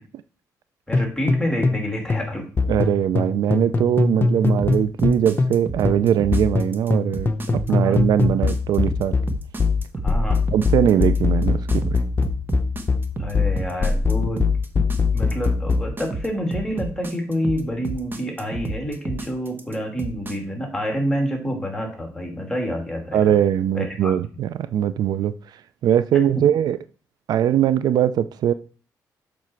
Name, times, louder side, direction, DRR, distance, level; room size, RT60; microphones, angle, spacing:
sound 1, 0.9-1.8 2.1-5.6 5.8-15.9, left 4 dB, 30° left, 0.8 m, -22 dB
voice 1, 0.9-2.5 7.7-8.0 10.0-10.4 13.2-14.4 15.1-23.3 23.7-24.1, equal, 10° left, 2.9 m, -28 dB
voice 2, 2.7-9.1 10.5-12.0 23.1-25.3 25.8-26.8 27.3-28.5, right 10 dB, 70° right, 0.4 m, -21 dB
sound 2, 4.6-20.4, right 3 dB, 30° right, 1.1 m, -31 dB
7.4 x 5.9 x 4.5 m
cardioid pair, 105°, 7 cm